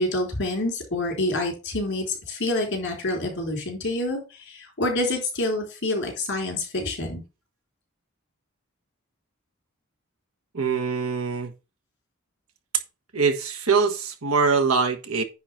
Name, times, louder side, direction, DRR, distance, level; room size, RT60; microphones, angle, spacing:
voice 1, 0.0-4.2 4.5-7.2, left 2 dB, 55° left, 4.2 m, -27 dB
voice 2, 10.5-11.5 13.1-15.2, right 5 dB, 85° right, 1.4 m, -23 dB
9.9 x 3.9 x 5.8 m
head